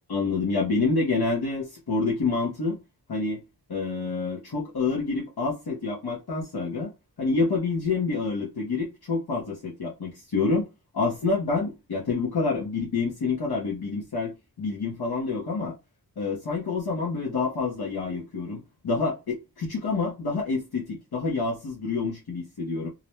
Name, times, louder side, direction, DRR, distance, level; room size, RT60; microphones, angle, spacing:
voice 1, 0.1-2.8 3.1-3.4 3.7-6.9 7.2-10.7 10.9-15.7 16.2-22.9, left 4 dB, 75° left, 0.8 m, -27 dB
2.6 x 2.1 x 2.9 m
wide cardioid pair, 90°, 39 cm